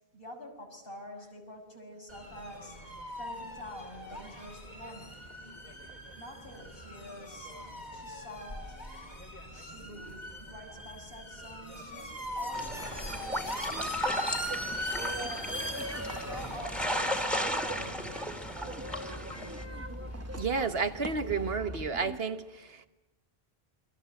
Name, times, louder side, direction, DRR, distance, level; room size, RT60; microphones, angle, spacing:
voice 1, 0.1-2.8 3.1-5.3 6.1-7.5 7.9-8.8 9.4-15.5 16.2-18.2, equal, 65° left, 1 dB, 6.4 m, -47 dB
sound 1, 2.1-21.6, left 1 dB, 45° left, 4.3 m, -41 dB
sound 2, 12.5-19.6, equal, ahead, 2.6 m, -35 dB
sound 3, 13.7-22.2, right 1 dB, 15° right, 1.0 m, -42 dB
voice 2, 20.3-22.8, right 5 dB, 70° right, 9 dB, 1.6 m, -31 dB
27.5 x 23.0 x 7.9 m, 0.99 s
omnidirectional pair, 1.0 m